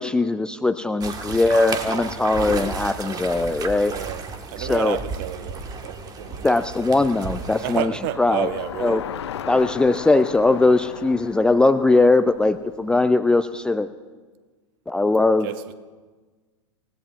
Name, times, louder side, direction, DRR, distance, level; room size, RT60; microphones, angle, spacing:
voice 1, 0.0-3.9 4.6-5.0 6.4-7.9 8.2-8.5 8.8-9.0 9.5-13.9 14.9-15.5, left 2 dB, 5° left, 11 dB, 0.3 m, -20 dB
sound 1, 1.0-7.8, right 4 dB, 25° right, 1.4 m, -33 dB
voice 2, 3.8-4.2 4.5-6.5 7.6-9.0 15.4-15.7, right 13 dB, 45° right, 12 dB, 0.8 m, -31 dB
Bicycle, 5.1-13.4, left 9 dB, 60° left, 0.7 m, -38 dB
28.5 x 17.5 x 2.4 m, 1.4 s
figure-of-eight pair, 90°, 16 cm